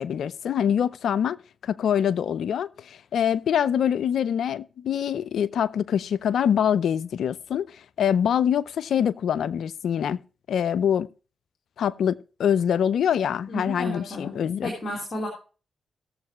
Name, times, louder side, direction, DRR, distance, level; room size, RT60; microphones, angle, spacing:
voice 1, 0.0-1.4 1.6-10.2 10.5-11.1 11.8-14.7, left 8 dB, 75° left, 0.4 m, -24 dB
voice 2, 13.5-14.3 14.6-15.3, left 1 dB, 55° left, 3.6 m, -32 dB
18.5 x 7.4 x 3.0 m
supercardioid pair, 45°, 0 cm